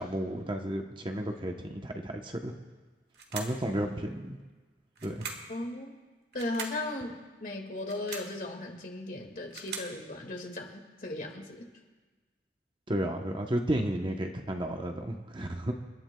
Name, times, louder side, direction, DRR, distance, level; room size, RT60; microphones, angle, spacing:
voice 1, 0.0-2.5 3.3-4.4 5.0-5.3 12.9-15.7, right 1 dB, 30° right, 3 dB, 0.9 m, -32 dB
sound 1, 3.1-3.7 5.0-5.6 6.3-6.8 7.8-8.4 9.2-10.0, right 5 dB, 65° right, 1.8 m, -41 dB
voice 2, 5.5-5.9 6.3-11.6, left 2 dB, 50° left, 2 dB, 2.0 m, -37 dB
29.5 x 12.5 x 2.3 m, 1.3 s
head